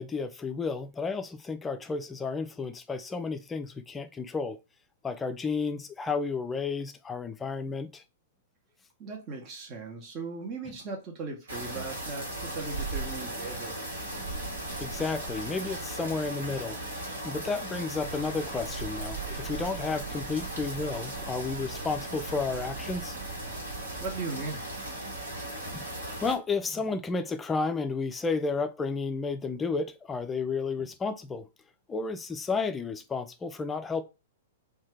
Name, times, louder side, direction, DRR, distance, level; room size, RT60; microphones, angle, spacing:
voice 1, 0.0-4.6 5.0-8.0 14.2-14.3 14.8-23.2 25.7-25.9 26.2-31.5 31.9-34.0, left 4 dB, 15° left, 0.4 m, -32 dB
voice 2, 9.0-13.8 24.0-24.6, right 4 dB, 30° right, 0.8 m, -38 dB
sound 1, 11.5-26.3, right 1 dB, 75° right, 1.2 m, -37 dB
sound 2, 18.0-24.1, right 7 dB, 50° right, 0.5 m, -44 dB
2.7 x 2.2 x 3.3 m
figure-of-eight pair, 105°, 0 cm